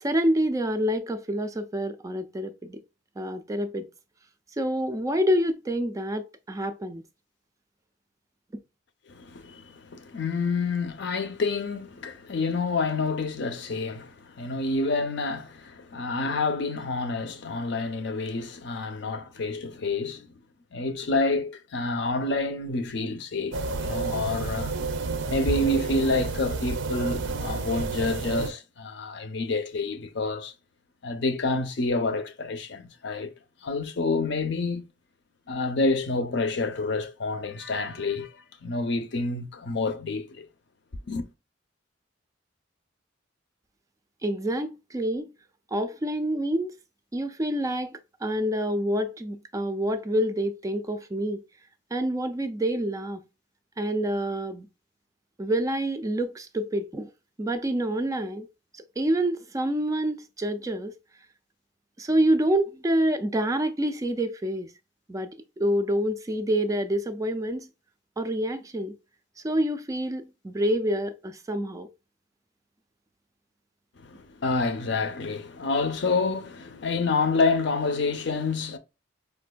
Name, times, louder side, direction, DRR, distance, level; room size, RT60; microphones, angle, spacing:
voice 1, 0.0-2.8 3.2-3.9 4.6-7.0 44.2-45.3 45.7-46.7 47.1-51.4 51.9-53.2 53.8-54.7 55.4-57.1 57.4-58.4 59.0-60.9 62.0-64.7 65.1-67.7 68.2-68.9 69.4-71.9, right 1 dB, 15° right, 0.3 m, -27 dB
voice 2, 9.1-20.3 20.7-24.7 25.3-30.5 31.0-33.3 33.6-34.8 35.5-38.3 38.6-40.5 41.1-41.2 74.0-78.8, left 3 dB, 60° left, 0.6 m, -28 dB
sound 1, 23.5-28.5, right 4 dB, 70° right, 0.5 m, -30 dB
4.9 x 2.4 x 2.2 m
head